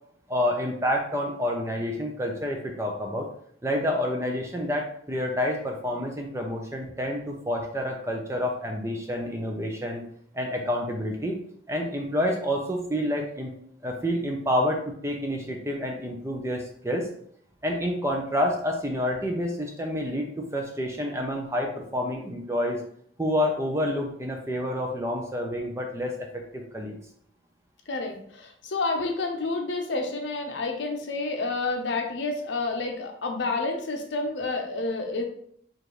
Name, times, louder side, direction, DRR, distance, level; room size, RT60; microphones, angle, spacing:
voice 1, 0.3-3.3 3.6-10.0 10.3-11.4 11.7-13.6 13.8-17.1 17.6-22.8 23.2-27.0, left 1 dB, 15° right, 1 dB, 0.5 m, -28 dB
voice 2, 27.9-35.2, left 3 dB, 75° left, 3 dB, 0.7 m, -29 dB
4.9 x 2.5 x 3.0 m, 0.64 s
head